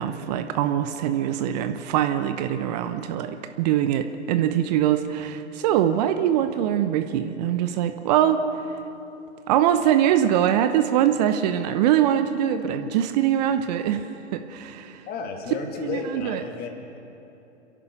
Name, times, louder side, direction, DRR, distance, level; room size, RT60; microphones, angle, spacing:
voice 1, 0.0-8.5 9.5-14.0 14.3-15.0 15.8-16.4, right 10 dB, 35° right, 9 dB, 0.9 m, -23 dB
voice 2, 15.1-17.0, left 5 dB, 25° left, 3 dB, 2.7 m, -33 dB
29.5 x 11.0 x 8.1 m, 2.9 s
figure-of-eight pair, 110°, 36 cm